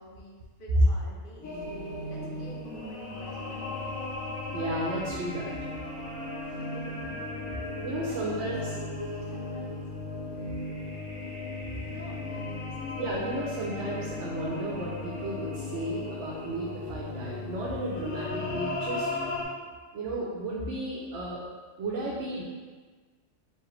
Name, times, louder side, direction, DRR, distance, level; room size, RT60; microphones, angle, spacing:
voice 1, 0.0-1.6 2.1-3.9 8.1-9.8 11.9-13.6, equal, 50° left, -4 dB, 0.9 m, -48 dB
sound 1, 1.4-19.4, left 2 dB, 80° left, 1.1 m, -36 dB
voice 2, 4.5-5.5 7.8-8.6 13.0-19.1 19.9-21.4 21.8-22.4, right 1 dB, 70° right, -4 dB, 1.0 m, -34 dB
4.7 x 2.9 x 3.1 m, 1.4 s
omnidirectional pair, 1.3 m